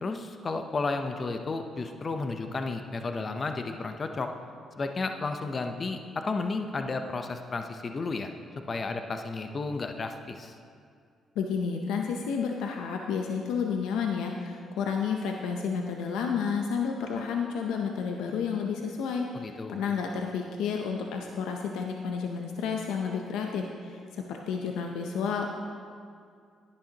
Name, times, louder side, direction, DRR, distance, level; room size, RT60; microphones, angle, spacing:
voice 1, 0.0-4.3 4.8-8.3 8.7-10.6 19.3-19.8, left 3 dB, 35° left, 6 dB, 0.6 m, -32 dB
voice 2, 11.4-25.5, left 6 dB, 90° left, 2 dB, 0.6 m, -31 dB
11.5 x 10.5 x 2.9 m, 2.3 s
cardioid pair, 90°, 0 cm